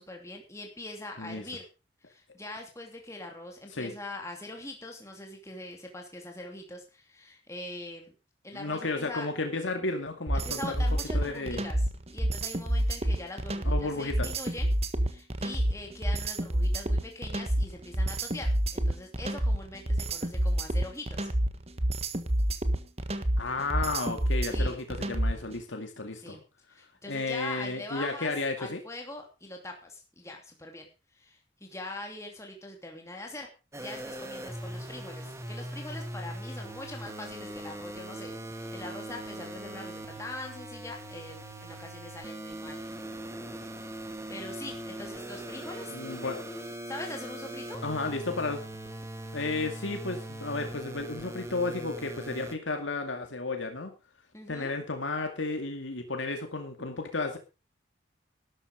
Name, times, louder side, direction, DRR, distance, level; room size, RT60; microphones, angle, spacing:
voice 1, 0.0-1.6 2.0-8.1 8.4-9.3 10.3-14.7 15.0-21.3 24.5-24.8 26.2-26.4 26.7-28.3 28.6-33.5 33.8-42.8 44.3-45.9 46.9-47.8 54.3-54.8, left 2 dB, 15° left, 2 dB, 2.7 m, -42 dB
voice 2, 8.5-10.8 11.1-11.6 13.6-14.3 23.4-26.4 27.1-28.8 45.9-46.4 47.8-48.6 49.3-53.9 54.5-57.4, left 3 dB, 90° left, 4 dB, 2.3 m, -33 dB
sound 1, 10.3-25.5, right 1 dB, 35° right, 1.4 m, -28 dB
sound 2, 33.7-52.6, right 1 dB, 15° right, 1.7 m, -40 dB
12.5 x 11.5 x 5.1 m, 0.31 s
head